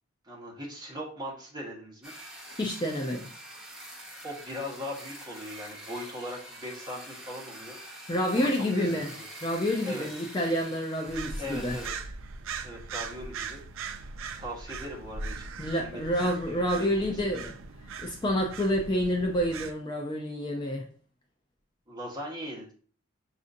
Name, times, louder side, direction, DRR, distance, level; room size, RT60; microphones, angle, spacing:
voice 1, 0.2-2.1 4.2-7.8 8.3-9.2 9.8-10.1 11.4-11.9 12.6-13.6 14.4-15.5 15.8-17.2 21.9-22.7, equal, 20° right, -3 dB, 1.2 m, -39 dB
sound 1, 2.0-11.9, right 1 dB, 5° right, 0.8 m, -45 dB
voice 2, 2.6-3.3 8.1-9.1 9.4-11.8 15.6-17.6 18.0-20.9, equal, 20° left, 1 dB, 0.4 m, -28 dB
sound 2, 11.0-19.7, right 4 dB, 70° right, 0.4 m, -40 dB
6.0 x 2.5 x 2.6 m, 0.43 s
head